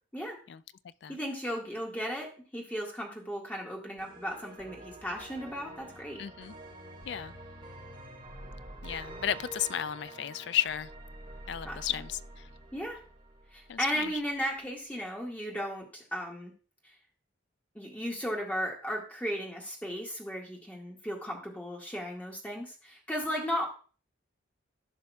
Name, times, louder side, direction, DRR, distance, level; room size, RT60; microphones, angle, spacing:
voice 1, 1.1-6.2 11.6-11.8 12.7-13.0 13.5-16.5 17.7-23.7, equal, 10° left, 1.8 m, -35 dB
sound 1, 4.0-14.0, right 1 dB, 25° right, 4.9 m, -47 dB
voice 2, 6.2-6.5 7.1-7.4 8.8-10.9 11.5-12.5 13.7-14.1, left 10 dB, 60° left, 0.3 m, -33 dB
14.5 x 5.5 x 2.4 m
head